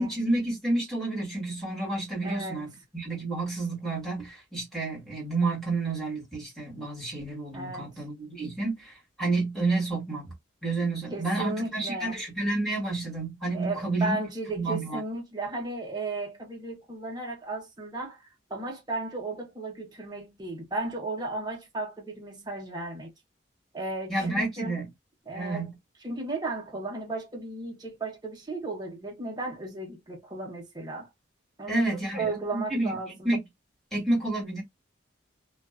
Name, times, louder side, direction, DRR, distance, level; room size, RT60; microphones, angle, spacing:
voice 1, 0.0-2.7 2.9-10.3 10.6-14.2 14.5-15.0 24.1-24.8 25.3-25.7 31.7-32.9 33.2-33.4 33.9-34.6, right 2 dB, ahead, 1.3 m, -29 dB
voice 2, 2.2-2.6 7.5-7.9 11.1-12.2 13.5-23.1 23.7-24.8 25.3-25.7 26.0-31.1 31.6-33.3, right 2 dB, 20° right, 0.9 m, -35 dB
2.4 x 2.3 x 2.3 m
head